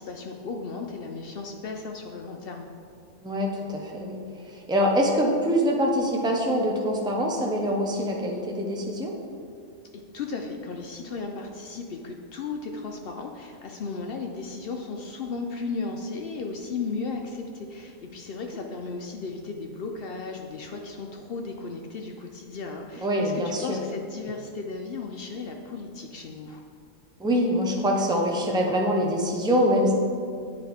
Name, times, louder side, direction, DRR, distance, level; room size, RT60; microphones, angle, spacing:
voice 1, 0.0-2.7 10.1-26.6, left 4 dB, 65° left, 3 dB, 0.6 m, -35 dB
voice 2, 3.2-4.2 4.5-9.1 23.0-23.8 27.2-29.9, equal, 5° right, 0 dB, 0.3 m, -24 dB
9.2 x 4.9 x 3.5 m, 2.3 s
omnidirectional pair, 1.5 m